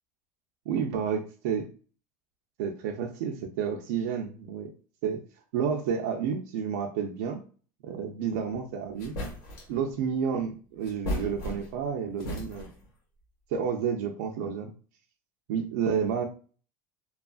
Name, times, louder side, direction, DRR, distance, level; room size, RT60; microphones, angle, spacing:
voice 1, 0.7-1.7 2.6-4.7 5.0-5.2 5.5-7.4 7.8-9.1 9.7-12.7 13.5-14.7 15.5-16.3, right 7 dB, 85° right, 2 dB, 0.4 m, -30 dB
sound 1, 8.5-8.6 9.0-9.8 10.8-11.9 12.2-12.9, left 1 dB, 80° left, 1.3 m, -35 dB
2.9 x 2.3 x 2.3 m, 0.40 s
cardioid pair, 155°, 9 cm